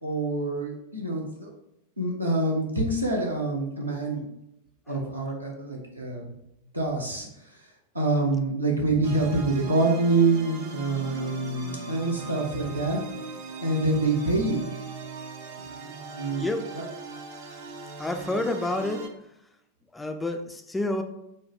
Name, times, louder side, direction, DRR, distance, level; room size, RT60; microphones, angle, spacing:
voice 1, 0.0-1.5 2.0-4.3 4.9-6.3 6.7-7.3 7.9-13.1 13.6-14.6 15.8-16.5 16.7-16.8, right 2 dB, 85° right, -2 dB, 0.8 m, -26 dB
sound 1, 9.0-19.1, right 5 dB, 50° right, 0.5 m, -39 dB
voice 2, 16.4-16.7 18.0-19.1 19.9-21.0, left 2 dB, 10° left, 6 dB, 0.3 m, -29 dB
4.2 x 2.1 x 3.2 m, 0.83 s
figure-of-eight pair, 90°, 0 cm